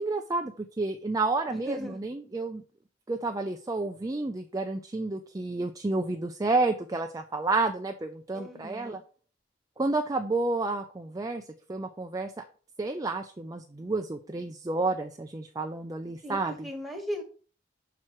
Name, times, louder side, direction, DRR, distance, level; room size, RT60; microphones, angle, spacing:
voice 1, 0.0-2.6 3.1-9.0 9.8-12.4 12.8-16.7, right 3 dB, 20° right, 5 dB, 0.4 m, -30 dB
voice 2, 1.5-2.0 8.3-9.0 16.2-17.2, equal, ahead, 1 dB, 1.3 m, -37 dB
5.9 x 4.5 x 4.4 m, 0.40 s
head